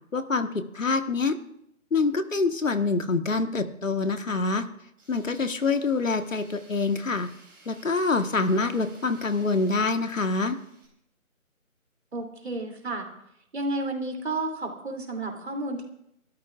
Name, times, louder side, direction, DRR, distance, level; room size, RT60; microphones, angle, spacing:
voice 1, 0.1-1.4 1.9-4.7 5.1-7.3 7.7-10.6, left 3 dB, 65° left, 8 dB, 1.4 m, -26 dB
Tools, 5.0-10.9, right 3 dB, 15° right, 4.0 m, -55 dB
voice 2, 12.1-13.1 13.5-15.8, right 2 dB, 50° right, 2 dB, 2.9 m, -31 dB
28.0 x 13.0 x 2.4 m, 0.75 s
figure-of-eight pair, 170°, 42 cm